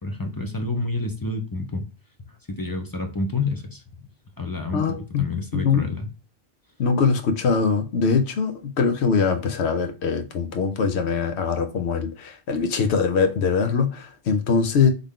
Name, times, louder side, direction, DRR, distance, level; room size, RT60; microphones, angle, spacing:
voice 1, 0.0-1.9 2.5-4.1 4.4-6.1, left 3 dB, 25° left, 0.5 m, -29 dB
voice 2, 4.7-5.2 5.5-5.8 6.8-14.9, left 5 dB, 80° left, 1.0 m, -22 dB
3.8 x 3.4 x 3.6 m
omnidirectional pair, 1.1 m